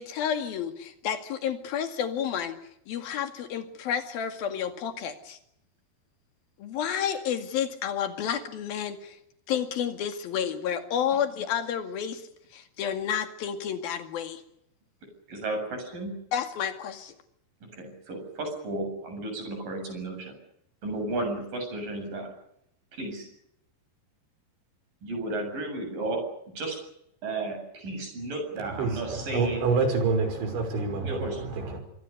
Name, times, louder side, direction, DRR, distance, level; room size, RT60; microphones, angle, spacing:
voice 1, 0.0-2.6 2.9-5.4 6.6-9.2 9.5-12.2 12.5-14.4 16.3-17.1, left 8 dB, 60° left, 8 dB, 3.7 m, -30 dB
voice 2, 15.3-16.2 17.6-20.4 20.8-22.3 22.9-23.3 25.0-26.8 27.2-29.7 31.0-31.4, right 2 dB, 50° right, 5 dB, 8.8 m, -33 dB
voice 3, 28.8-31.8, right 4 dB, 85° right, 7 dB, 8.0 m, -27 dB
26.5 x 24.0 x 6.7 m, 0.75 s
omnidirectional pair, 5.2 m